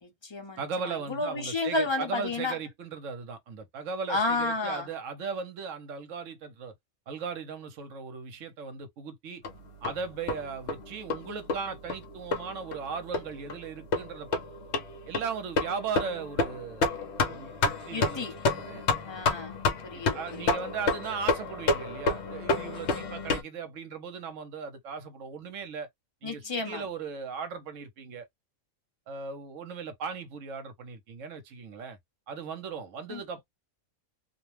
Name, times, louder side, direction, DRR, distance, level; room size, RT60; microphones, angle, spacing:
voice 1, 0.0-2.6 4.1-4.9 17.9-18.3 19.1-19.6 19.8-20.5 26.2-26.8 33.1-33.2, left 3 dB, 30° left, 0.6 m, -31 dB
voice 2, 0.6-6.7 7.1-9.4 9.8-14.4 15.1-18.8 19.9-25.9 26.2-28.3 29.1-32.0 32.3-33.4, right 5 dB, 75° right, 1.0 m, -37 dB
sound 1, 9.4-23.4, left 3 dB, 65° left, 0.9 m, -30 dB
2.5 x 2.1 x 3.1 m
omnidirectional pair, 1.4 m